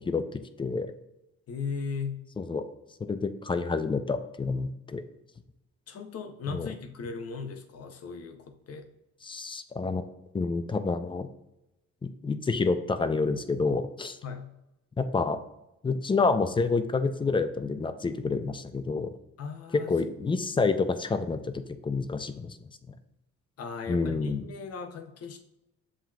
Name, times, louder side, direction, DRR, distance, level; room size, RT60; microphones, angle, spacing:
voice 1, 0.6-0.9 2.4-2.6 3.0-5.0 6.5-6.7 9.2-10.0 10.3-11.3 12.0-14.2 15.0-15.4 15.8-19.1 19.9-22.6 23.9-24.4, left 4 dB, 15° left, 10 dB, 0.3 m, -28 dB
voice 2, 1.5-2.3 5.9-8.9 14.2-14.6 19.4-20.3 23.6-25.4, left 5 dB, 55° left, 6 dB, 0.7 m, -37 dB
7.4 x 2.9 x 2.3 m, 0.90 s
cardioid pair, 90°, 30 cm